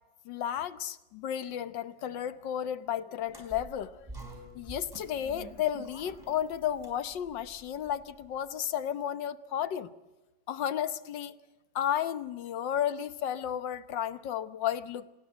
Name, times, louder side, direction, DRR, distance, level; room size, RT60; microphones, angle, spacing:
voice 1, 0.2-4.1 4.5-9.9 10.5-11.3 11.7-15.1, left 10 dB, 85° left, 13 dB, 1.7 m, -33 dB
sound 1, 3.2-8.5, right 2 dB, 10° right, 4.7 m, -49 dB
26.5 x 19.5 x 8.1 m, 1.0 s
omnidirectional pair, 1.9 m